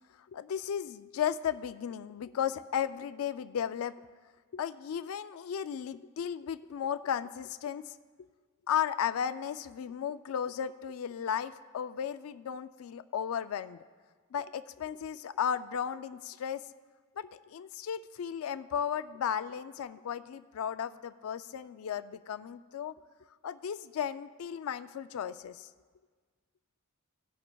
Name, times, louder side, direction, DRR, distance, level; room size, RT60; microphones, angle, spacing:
voice 1, 0.3-3.9 4.5-8.0 8.7-13.8 14.3-16.6 17.2-22.9 23.4-25.7, left 8 dB, 70° left, 12 dB, 0.3 m, -35 dB
17.5 x 11.0 x 2.3 m, 1.5 s
head